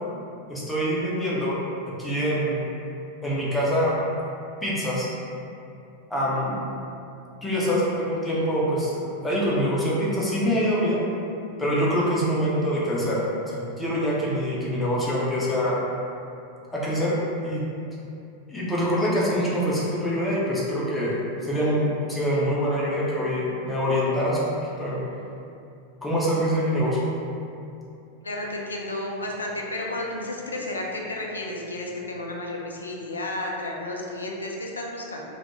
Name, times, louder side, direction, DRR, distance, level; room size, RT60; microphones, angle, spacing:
voice 1, 0.5-1.6 2.0-2.7 3.2-4.0 4.6-5.1 6.1-6.6 7.4-11.1 11.6-13.2 13.5-15.8 16.7-17.1 17.4-17.6 18.5-25.0 26.0-27.1, equal, 10° left, -7 dB, 0.6 m, -25 dB
voice 2, 28.2-35.2, left 1 dB, 75° left, -1 dB, 0.3 m, -32 dB
2.2 x 2.1 x 2.9 m, 2.6 s
figure-of-eight pair, 90°, 0 cm